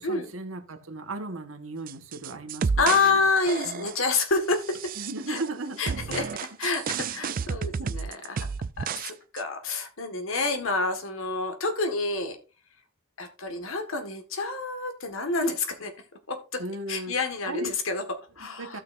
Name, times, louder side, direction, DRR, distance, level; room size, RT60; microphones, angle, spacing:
voice 1, 0.0-3.2 3.6-3.8 5.0-6.3 6.6-7.3 7.8-7.9 16.6-17.1 17.4-17.7 18.6-18.8, right 2 dB, 70° right, 1.4 m, -36 dB
sound 1, 1.9-3.1 3.4-4.1 4.6-5.5 5.9-9.1 9.4-9.5, right 6 dB, 45° right, 0.4 m, -31 dB
voice 2, 2.8-4.9 5.3-5.4 5.8-8.5 8.8-12.4 13.2-15.9 16.3-16.6 16.9-18.8, left 3 dB, 70° left, 1.7 m, -28 dB
16.0 x 6.0 x 2.6 m
head